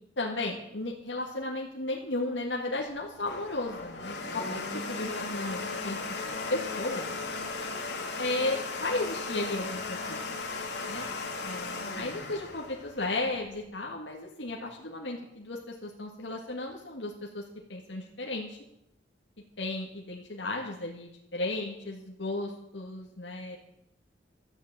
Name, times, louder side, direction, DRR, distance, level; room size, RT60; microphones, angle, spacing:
voice 1, 0.2-7.1 8.2-10.2 10.9-11.1 11.4-17.4 17.7-18.6 19.6-23.6, left 2 dB, 85° left, -1 dB, 1.9 m, -34 dB
Domestic sounds home sounds, 2.9-13.6, left 3 dB, 70° left, 2.4 m, -36 dB
13.0 x 8.5 x 8.7 m, 0.80 s
head